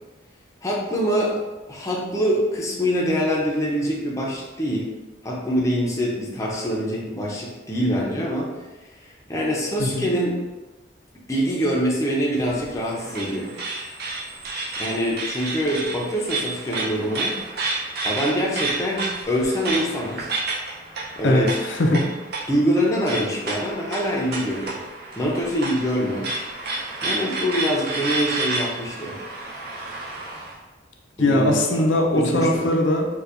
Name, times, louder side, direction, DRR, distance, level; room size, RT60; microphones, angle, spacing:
voice 1, 0.6-1.4 1.7-4.9 5.2-8.5 9.3-10.4 11.3-13.5 14.8-17.4 18.0-20.3 21.2-21.5 22.5-24.8 25.2-26.3 27.0-29.2 31.2-32.7, equal, 15° left, -4 dB, 0.5 m, -24 dB
sound 1, 12.4-30.5, right 2 dB, 55° right, 0.6 m, -31 dB
voice 2, 21.2-22.1 31.2-33.1, left 1 dB, 80° left, 1 dB, 0.5 m, -20 dB
4.2 x 2.2 x 2.5 m, 1.1 s
head